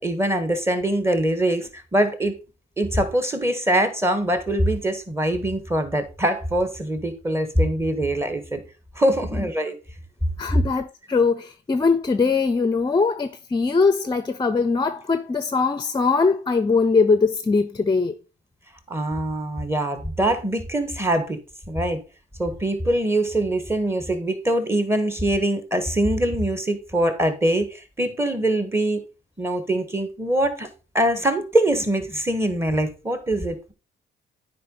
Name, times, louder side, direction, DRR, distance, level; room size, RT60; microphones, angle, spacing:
voice 1, 0.0-2.3 2.8-8.6 8.9-9.8 10.5-10.6 18.9-21.4 21.7-22.0 22.4-29.0 29.4-30.7 30.9-33.7, right 1 dB, 10° right, 1.6 m, -23 dB
voice 2, 10.4-18.2, left 4 dB, 20° left, 0.6 m, -21 dB
9.4 x 4.9 x 3.9 m
cardioid pair, 90°, 20 cm